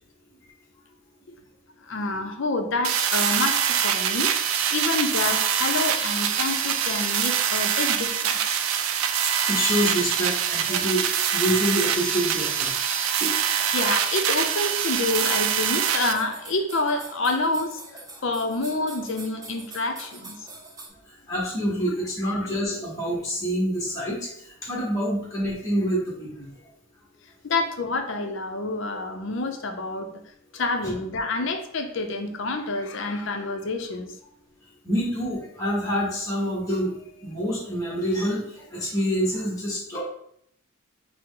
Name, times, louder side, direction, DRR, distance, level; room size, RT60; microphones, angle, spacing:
voice 1, 1.8-4.3 4.7-8.4 13.7-17.8 18.2-20.5 27.4-30.1 30.5-34.1, left 2 dB, 60° left, 5 dB, 0.5 m, -28 dB
sound 1, 2.8-16.1, right 8 dB, 75° right, 0.4 m, -24 dB
voice 2, 8.7-12.7 13.2-13.3 21.1-26.5 30.8-30.9 34.8-40.0, equal, 15° left, -7 dB, 1.0 m, -27 dB
sound 2, 13.0-20.9, right 2 dB, 15° right, 0.5 m, -44 dB
5.6 x 2.1 x 3.7 m, 0.71 s
head